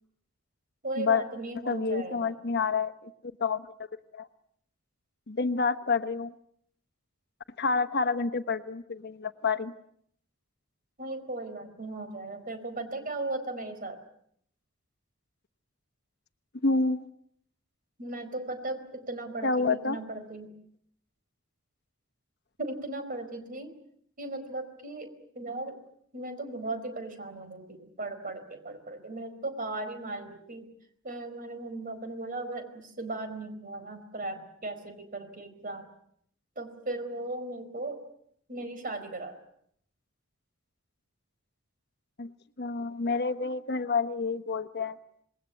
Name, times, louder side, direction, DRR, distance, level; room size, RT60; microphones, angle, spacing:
voice 1, 0.8-2.3 11.0-14.0 18.0-20.5 22.6-23.7 24.2-25.8 26.1-30.7 31.0-35.9 36.6-38.0 38.5-39.4, right 2 dB, 40° right, 8 dB, 4.6 m, -37 dB
voice 2, 1.7-3.1 3.4-3.7 4.1-4.3 5.3-6.3 7.6-9.7 16.6-17.1 19.4-20.0 42.2-42.3 42.6-45.0, left 4 dB, 55° left, 10 dB, 1.0 m, -28 dB
27.0 x 21.5 x 8.2 m, 0.69 s
head